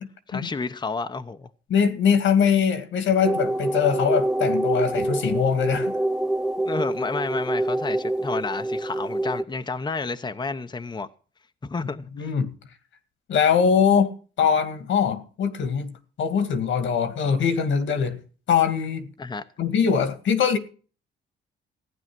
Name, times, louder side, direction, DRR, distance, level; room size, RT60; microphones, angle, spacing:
voice 1, 0.3-1.5 6.6-11.1 11.6-12.3 19.2-19.4, left 4 dB, 20° left, 0.9 m, -31 dB
voice 2, 1.7-5.9 12.2-12.5 13.3-15.9 16.2-18.2 18.5-19.1 19.6-20.6, left 7 dB, 75° left, 2.1 m, -22 dB
sound 1, 3.2-9.4, right 1 dB, 5° right, 1.4 m, -26 dB
15.5 x 9.5 x 6.1 m
cardioid pair, 90°, 20 cm